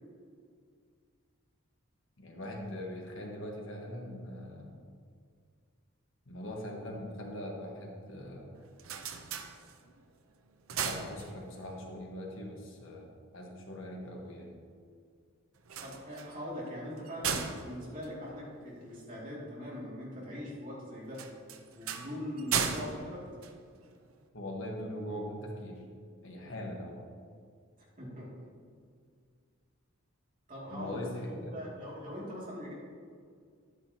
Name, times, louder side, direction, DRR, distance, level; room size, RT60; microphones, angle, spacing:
voice 1, 2.2-4.8 6.2-8.6 10.7-14.5 24.3-25.8 26.2-26.9 30.7-31.6, left 1 dB, 65° left, -1 dB, 1.5 m, -41 dB
sound 1, 8.6-10.1 10.5-11.8 15.6-19.0 21.1-24.2, right 7 dB, 75° right, 0.7 m, -37 dB
voice 2, 15.8-21.2 21.7-23.4 28.0-28.3 30.5-32.7, left 1 dB, 40° right, -6 dB, 2.5 m, -41 dB
10.5 x 9.0 x 2.9 m, 2.1 s
head